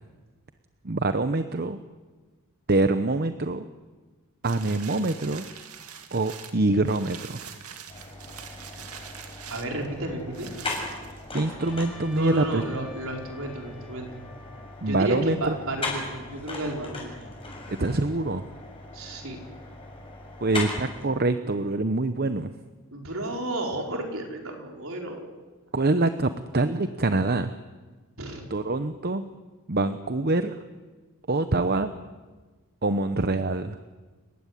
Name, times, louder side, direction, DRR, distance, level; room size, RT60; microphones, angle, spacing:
voice 1, 0.8-1.8 2.7-3.7 4.4-5.5 6.1-7.4 11.3-12.9 14.8-15.6 17.7-18.4 20.4-22.5 25.7-27.5 28.5-29.2 29.7-30.6 31.3-31.9 32.8-33.8, right 2 dB, 45° right, 10 dB, 0.9 m, -25 dB
sound 1, 4.4-11.6 12.1-12.2, right 7 dB, 80° right, 2.3 m, -44 dB
sound 2, 7.9-21.0, left 2 dB, 25° left, 7.0 m, -38 dB
voice 2, 9.5-10.5 12.1-14.2 14.9-17.1 18.9-19.4 22.9-25.2 28.2-28.4, right 1 dB, 65° right, 2 dB, 4.9 m, -32 dB
Trumpet, 11.6-16.0, left 2 dB, ahead, 4.6 m, -51 dB
29.5 x 16.0 x 9.9 m, 1.3 s
head